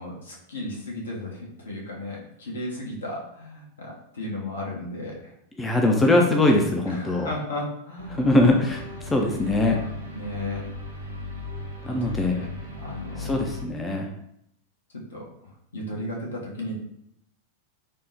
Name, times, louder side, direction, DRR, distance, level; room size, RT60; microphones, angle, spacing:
voice 1, 0.0-5.3 6.9-8.2 10.1-10.7 11.9-12.0 12.3-13.3 14.9-15.3 15.7-16.8, left 1 dB, 70° left, -2 dB, 0.8 m, -35 dB
voice 2, 5.6-7.3 8.1-9.8 11.8-12.4 13.2-14.1, left 2 dB, 15° left, 2 dB, 0.3 m, -22 dB
sound 1, 8.0-13.6, left 2 dB, 75° right, 0.5 m, -36 dB
3.4 x 2.0 x 2.7 m, 0.75 s
figure-of-eight pair, 90°, 0 cm